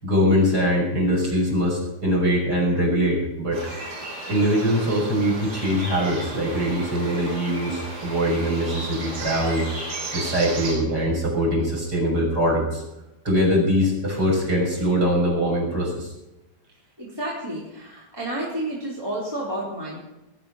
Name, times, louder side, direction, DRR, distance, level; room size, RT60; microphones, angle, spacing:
voice 1, 0.0-3.6 4.3-9.7 10.1-12.8 13.2-16.1, equal, 20° right, -4 dB, 6.6 m, -22 dB
sound 1, 3.5-10.8, right 2 dB, 65° right, 7.3 m, -34 dB
voice 2, 17.0-20.0, right 1 dB, 5° right, -7 dB, 3.7 m, -30 dB
20.0 x 10.5 x 5.7 m, 0.95 s
omnidirectional pair, 4.9 m